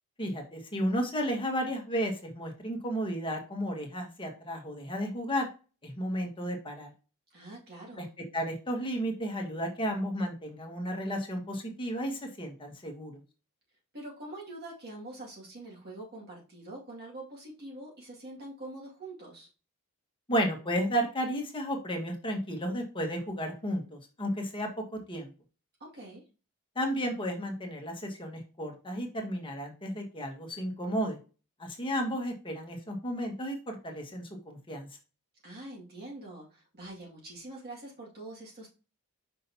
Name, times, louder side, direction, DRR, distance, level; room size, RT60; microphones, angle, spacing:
voice 1, 0.2-5.5 5.8-6.9 8.0-8.1 8.3-13.1 20.3-25.3 26.7-31.2 31.6-34.9, equal, 25° left, 2 dB, 1.5 m, -33 dB
voice 2, 7.3-8.1 13.9-19.5 25.8-26.2 35.4-38.8, right 2 dB, 45° right, -3 dB, 2.1 m, -45 dB
6.3 x 5.7 x 2.8 m, 0.32 s
head